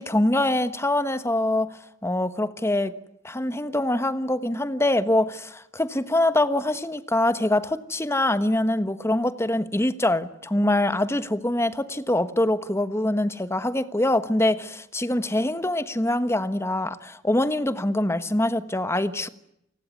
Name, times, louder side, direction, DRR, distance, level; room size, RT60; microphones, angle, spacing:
voice 1, 0.0-1.7 2.0-2.9 3.2-19.3, left 1 dB, 15° left, 1.2 m, -24 dB
29.0 x 19.5 x 9.5 m
head